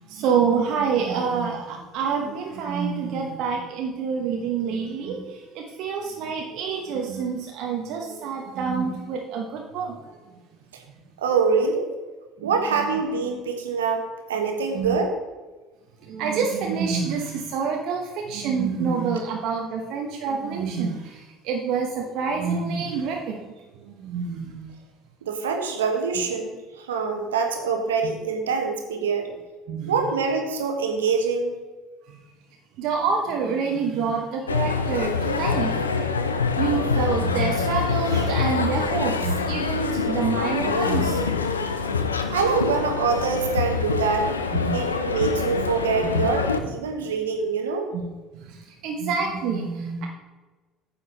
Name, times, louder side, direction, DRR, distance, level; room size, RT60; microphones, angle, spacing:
voice 1, 0.1-10.0 10.2-10.3 12.4-13.0 14.7-15.0 16.0-24.7 28.0-28.1 29.7-29.9 32.1-32.2 32.8-36.1 36.6-41.4 44.5-44.9 46.0-46.2 46.6-46.7 47.9-48.0 48.3-50.1, right 5 dB, 55° right, 0 dB, 1.1 m, -27 dB
voice 2, 11.2-11.9 12.4-14.0 14.3-15.1 25.2-29.3 29.9-31.5 42.3-44.3 44.7-47.9, right 5 dB, 80° right, 4 dB, 1.3 m, -25 dB
sound 1, 34.5-46.6, left 4 dB, 85° left, 0.6 m, -25 dB
9.6 x 7.1 x 4.0 m, 1.2 s
figure-of-eight pair, 60°, 0 cm